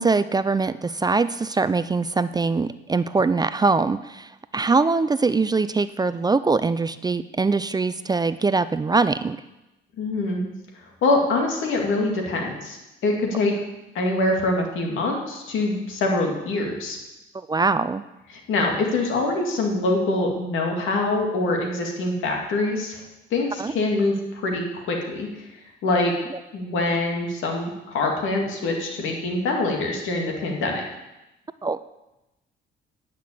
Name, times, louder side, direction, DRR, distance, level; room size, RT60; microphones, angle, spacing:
voice 1, 0.0-9.4 17.3-18.0 23.6-23.7 26.3-26.4 31.6-31.8, right 4 dB, 20° right, 14 dB, 0.4 m, -22 dB
voice 2, 10.0-10.4 11.0-12.8 13.0-13.5 13.9-17.0 18.3-23.0 23.3-24.1 24.4-25.3 25.8-26.1 26.5-30.8, left 2 dB, 80° left, 1 dB, 2.4 m, -24 dB
9.6 x 6.1 x 8.4 m, 0.97 s
cardioid pair, 90°, 20 cm